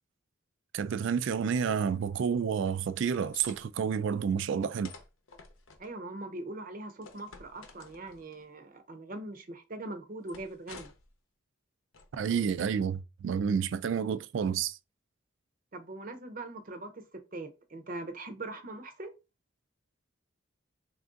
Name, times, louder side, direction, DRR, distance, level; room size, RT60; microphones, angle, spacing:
voice 1, 0.7-4.9 12.1-14.8, right 7 dB, 60° right, 0.3 m, -30 dB
sound 1, 2.7-3.6 4.8-5.9 7.0-8.4 10.3-11.1 11.9-12.4, left 4 dB, 75° left, 0.7 m, -51 dB
voice 2, 5.8-10.9 15.7-17.0 17.3-19.1, right 2 dB, 40° right, 0.7 m, -41 dB
3.4 x 2.5 x 3.7 m
head